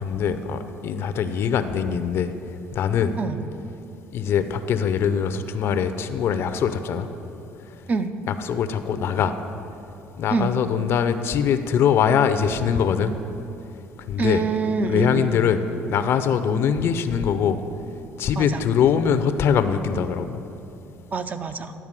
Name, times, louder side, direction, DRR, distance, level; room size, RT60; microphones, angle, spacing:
voice 1, 0.0-2.3 2.7-3.1 4.1-7.1 8.5-9.3 10.2-13.1 14.1-14.4 14.9-15.6 15.9-17.6 18.2-20.4, left 7 dB, 60° left, 10 dB, 0.5 m, -22 dB
voice 2, 14.2-15.3 18.4-18.6 21.1-21.7, right 4 dB, 35° right, 9 dB, 0.5 m, -25 dB
11.0 x 4.6 x 7.4 m, 2.8 s
supercardioid pair, 90°, 5 cm